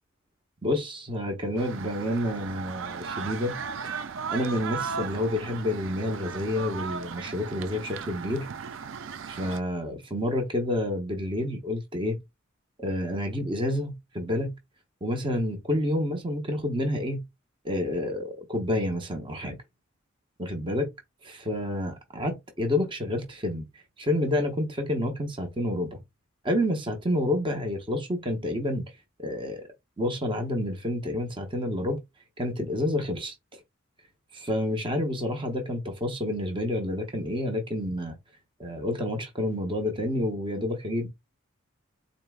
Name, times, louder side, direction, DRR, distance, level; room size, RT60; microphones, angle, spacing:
voice 1, 0.6-3.6 3.8-4.0 4.3-8.5 9.3-12.2 12.8-14.5 15.0-17.2 17.6-19.6 20.4-20.9 21.2-26.0 26.4-28.8 29.2-29.6 30.0-32.0 32.4-33.6 34.3-38.1 38.6-41.1, left 1 dB, 25° right, 0.7 m, -29 dB
sound 1, 1.6-9.6, right 6 dB, 60° right, 0.5 m, -36 dB
4.0 x 2.8 x 3.4 m
head